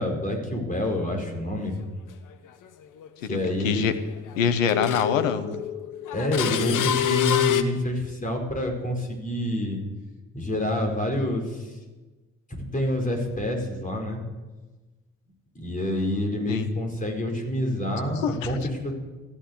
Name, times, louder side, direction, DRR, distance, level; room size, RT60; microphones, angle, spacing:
voice 1, 0.0-1.9 3.2-3.8 6.1-9.8 10.3-11.8 12.5-14.2 15.5-18.9, left 1 dB, 20° left, 1 dB, 4.8 m, -27 dB
sound 1, 1.6-1.7 3.0-3.1 3.5-4.4 4.7-7.6, left 11 dB, 55° left, 1.2 m, -26 dB
voice 2, 4.3-5.5 6.7-6.8 16.5-16.7 18.2-18.5, left 7 dB, 80° left, 11 dB, 1.0 m, -24 dB
13.5 x 10.5 x 8.1 m, 1.2 s
figure-of-eight pair, 45°, 39 cm